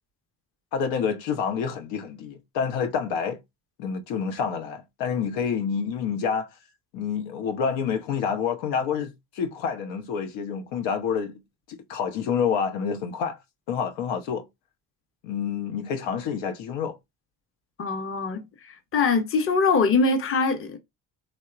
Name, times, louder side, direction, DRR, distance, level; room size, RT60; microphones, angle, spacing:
voice 1, 0.7-3.4 3.8-6.5 6.9-11.4 11.7-13.4 13.7-14.4 15.2-17.0, left 6 dB, 65° left, 0.7 m, -28 dB
voice 2, 17.8-18.4 18.9-20.8, left 4 dB, 25° left, 0.7 m, -22 dB
3.0 x 2.1 x 2.3 m
hypercardioid pair, 50°, 49 cm